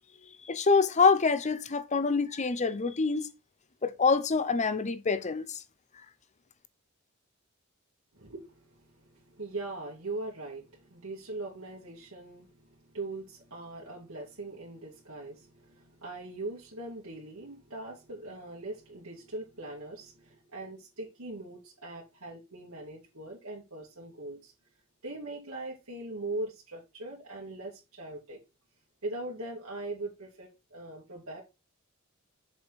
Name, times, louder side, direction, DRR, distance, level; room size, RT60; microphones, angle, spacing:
voice 1, 0.5-3.3 3.8-5.6, left 4 dB, 35° left, 0.7 m, -26 dB
voice 2, 8.1-24.5 25.0-28.4 29.0-31.4, right 2 dB, 85° right, 2.5 m, -41 dB
7.0 x 5.0 x 4.1 m
head